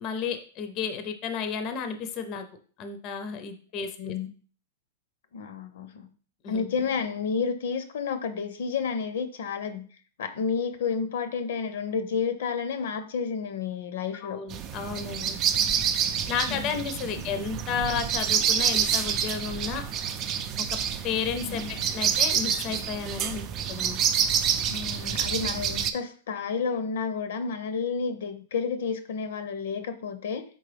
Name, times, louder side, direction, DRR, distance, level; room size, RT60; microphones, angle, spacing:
voice 1, 0.0-2.4 2.8-4.1 6.4-6.6 14.2-15.4 16.3-19.8 21.0-21.6 21.9-23.4 23.7-24.0, left 6 dB, 30° left, 8 dB, 0.5 m, -32 dB
voice 2, 3.8-4.3 5.3-6.1 6.5-9.9 10.2-14.4 16.5-16.8 21.4-21.8 24.7-30.4, left 5 dB, 75° left, 10 dB, 0.6 m, -31 dB
sound 1, 14.5-25.9, right 8 dB, 30° right, 0.4 m, -28 dB
4.2 x 3.7 x 3.3 m, 0.42 s
hypercardioid pair, 150°, 0 cm